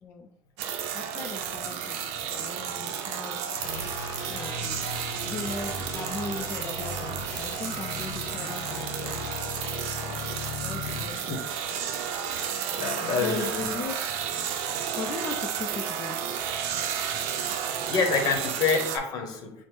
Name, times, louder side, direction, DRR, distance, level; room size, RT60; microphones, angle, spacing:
sound 1, 0.6-19.0, right 8 dB, 80° right, 0.5 m, -32 dB
voice 1, 0.9-4.9 5.2-9.3 10.0-10.3 10.6-11.4 11.7-11.8 12.7-12.8 13.2-13.9 14.9-16.2, left 4 dB, 25° left, 1 dB, 0.4 m, -38 dB
sound 2, 3.5-11.1, left 5 dB, 85° left, 0.7 m, -38 dB
voice 2, 10.9-11.4 12.7-13.8 17.8-19.5, left 5 dB, 45° left, 4 dB, 0.8 m, -28 dB
5.9 x 2.0 x 3.1 m, 0.72 s
cardioid pair, 150°, 9 cm